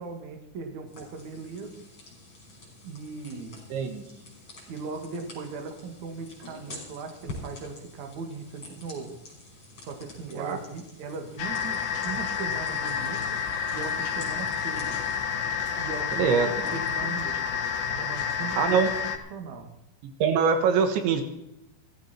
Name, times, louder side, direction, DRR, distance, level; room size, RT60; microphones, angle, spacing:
voice 1, 0.0-1.7 2.8-3.6 4.7-9.1 9.8-13.4 13.7-15.0 15.8-17.4 17.9-18.8 19.3-19.7, right 4 dB, 50° right, 4 dB, 2.8 m, -38 dB
sound 1, 0.9-17.2, left 2 dB, 30° left, 6.4 m, -48 dB
voice 2, 3.7-4.0 10.4-10.6 16.2-16.5 18.6-18.9 20.2-21.2, right 6 dB, 85° right, 7 dB, 3.7 m, -23 dB
sound 2, 11.4-19.2, left 7 dB, 80° left, 3.9 m, -29 dB
15.5 x 15.0 x 4.5 m, 0.87 s
omnidirectional pair, 5.2 m